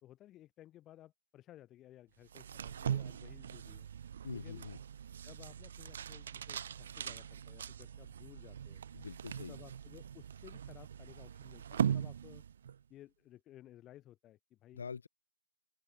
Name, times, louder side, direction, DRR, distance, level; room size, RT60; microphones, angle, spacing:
voice 1, 0.0-3.9 4.3-4.6 5.2-8.8 9.4-12.4 12.9-14.8, left 13 dB, 10° left, 1.2 m, -57 dB
sound 1, 2.3-12.8, right 8 dB, 40° right, 0.3 m, -40 dB
voice 2, 4.2-4.8 8.9-9.6 14.7-15.1, left 5 dB, 55° left, 0.9 m, -44 dB
open air
hypercardioid pair, 165°, 0 cm